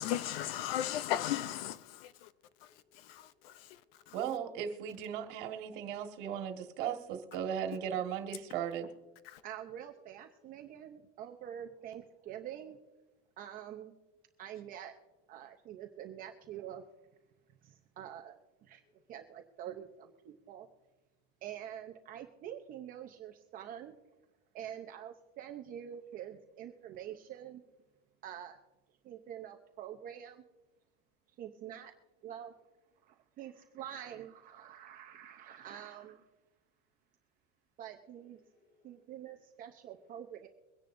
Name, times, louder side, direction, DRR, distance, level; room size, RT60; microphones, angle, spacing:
voice 1, 0.0-2.3 2.9-3.8 4.1-4.2, left 12 dB, 65° left, 0.6 m, -36 dB
voice 2, 1.9-4.1 8.8-8.9 9.3-9.5 18.8-18.9 38.4-39.0, left 1 dB, 30° left, 2.4 m, -66 dB
voice 3, 4.1-8.8, right 8 dB, 55° right, 1.7 m, -37 dB
voice 4, 9.4-12.8 13.4-13.9 14.4-14.9 15.3-16.8 17.6-18.8 19.1-20.7 21.4-24.0 24.5-27.6 28.2-28.6 29.0-30.4 31.4-31.9 32.2-32.5 33.0-36.3 37.8-38.4 38.8-40.5, right 10 dB, 30° right, 0.6 m, -46 dB
23.5 x 10.0 x 2.6 m
cardioid pair, 175°, 31 cm